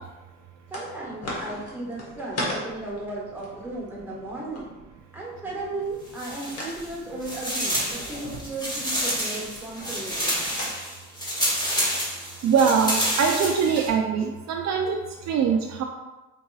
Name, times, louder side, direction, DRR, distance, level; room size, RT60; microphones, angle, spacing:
sound 1, 0.7-0.9 1.2-4.6 6.6-6.8 7.7-9.1 9.8-10.3 10.5-10.8, left 1 dB, 55° left, 1.2 m, -35 dB
voice 1, 0.7-4.7 5.1-10.4, right 2 dB, 5° right, -5 dB, 1.2 m, -35 dB
sound 2, 6.1-6.9 7.2-13.9, equal, 15° left, 1.5 m, -29 dB
voice 2, 12.4-15.0 15.3-15.8, right 6 dB, 65° right, 2 dB, 0.4 m, -22 dB
4.6 x 2.9 x 2.3 m, 1.1 s
cardioid pair, 90°, 30 cm